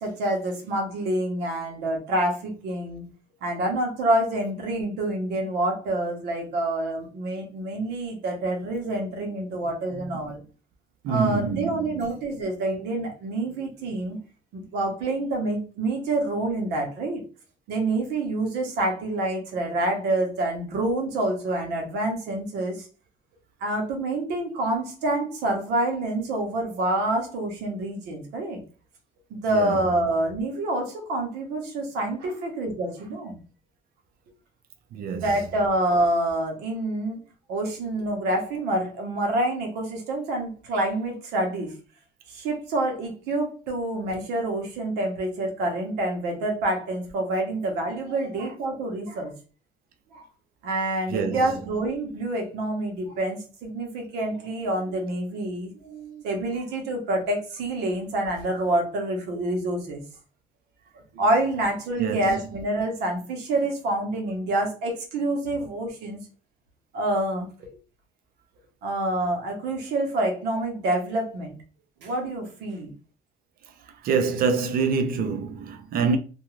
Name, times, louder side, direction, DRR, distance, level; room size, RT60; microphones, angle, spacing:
voice 1, 0.0-3.0 3.4-10.4 11.1-14.2 14.5-17.2 17.7-22.9 23.6-28.6 29.3-33.4 35.1-37.2 37.5-41.7 42.3-49.3 50.1-50.3 50.6-60.0 61.1-66.3 66.9-67.7 68.8-71.6 72.0-72.9, right 1 dB, 90° right, 1.0 m, -27 dB
voice 2, 11.0-12.1 29.5-29.8 34.9-35.3 51.1-51.5 62.0-62.4 74.0-76.2, right 5 dB, 60° right, 0.5 m, -26 dB
2.5 x 2.3 x 3.0 m
cardioid pair, 110°, 17 cm